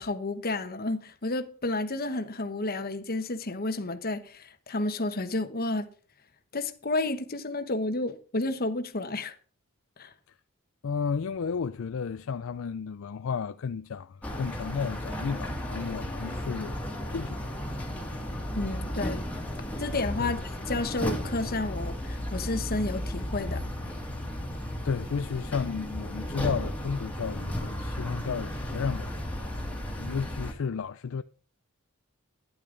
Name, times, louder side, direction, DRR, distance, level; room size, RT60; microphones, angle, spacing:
voice 1, 0.0-5.9 6.5-9.3 10.0-10.1 18.5-19.2 19.8-20.4 20.7-23.6, left 2 dB, 45° left, 1.2 m, -31 dB
voice 2, 10.8-16.8 17.1-17.4 20.2-20.4 24.8-29.5 30.0-31.2, left 6 dB, 65° left, 0.4 m, -33 dB
sound 1, 14.2-30.5, equal, 5° left, 2.1 m, -34 dB
12.0 x 10.5 x 3.9 m
head